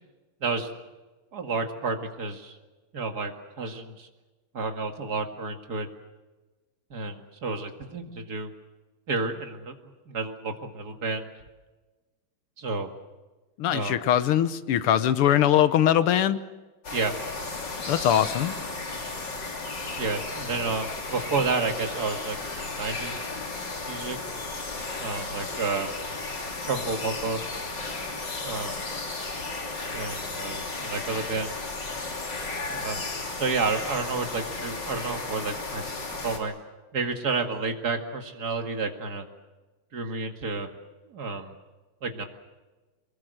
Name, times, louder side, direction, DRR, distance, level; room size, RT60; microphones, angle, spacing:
voice 1, 0.4-0.7 1.3-2.6 2.9-4.1 4.5-5.9 6.9-8.5 9.1-9.7 10.1-11.3 12.6-12.9 13.7-14.0 16.9-17.1 20.0-23.2 23.9-24.2 25.0-26.0 26.7-27.4 28.4-28.8 29.9-31.7 32.7-33.1 33.3-35.8 36.1-36.5 36.9-39.3 39.9-40.7 41.1-41.5 42.0-42.2, right 4 dB, 45° right, 5 dB, 2.5 m, -30 dB
voice 2, 13.6-16.4 17.9-18.5, left 10 dB, 90° left, 13 dB, 1.9 m, -22 dB
sound 1, 16.8-36.4, left 3 dB, 55° left, 3.5 m, -34 dB
23.5 x 21.0 x 7.9 m, 1.2 s
omnidirectional pair, 2.4 m